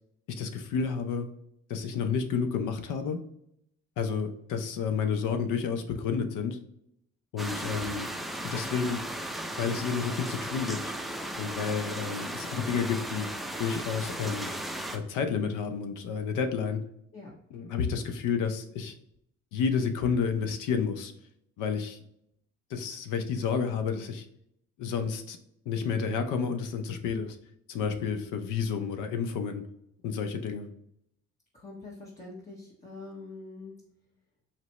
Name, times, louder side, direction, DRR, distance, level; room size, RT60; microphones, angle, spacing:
voice 1, 0.4-1.3 1.7-3.2 4.0-6.6 7.3-8.1 8.4-9.0 9.6-10.9 11.4-13.3 13.6-14.5 14.9-16.8 17.5-18.9 19.5-21.1 21.6-22.0 22.7-24.3 24.8-25.4 25.7-27.4 27.7-29.6 30.0-30.7, left 6 dB, 90° left, 8 dB, 0.7 m, -30 dB
sound 1, 7.4-15.0, right 1 dB, ahead, 0.5 m, -36 dB
voice 2, 7.5-7.8 17.1-17.3 31.5-33.7, left 2 dB, 25° left, -6 dB, 1.4 m, -44 dB
4.4 x 3.0 x 2.9 m, 0.75 s
cardioid pair, 90°, 30 cm